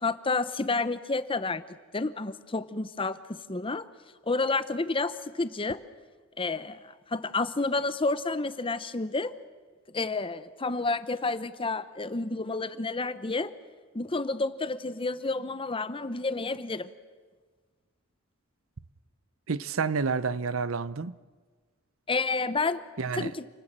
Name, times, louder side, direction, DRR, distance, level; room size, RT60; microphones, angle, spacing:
voice 1, 0.0-1.6 1.9-3.9 4.2-5.8 6.4-9.3 9.9-13.5 13.9-16.9 22.1-23.5, left 3 dB, 25° left, 0.8 m, -30 dB
voice 2, 19.5-21.1 23.0-23.3, right 5 dB, 70° right, 0.7 m, -29 dB
28.5 x 19.5 x 7.5 m
head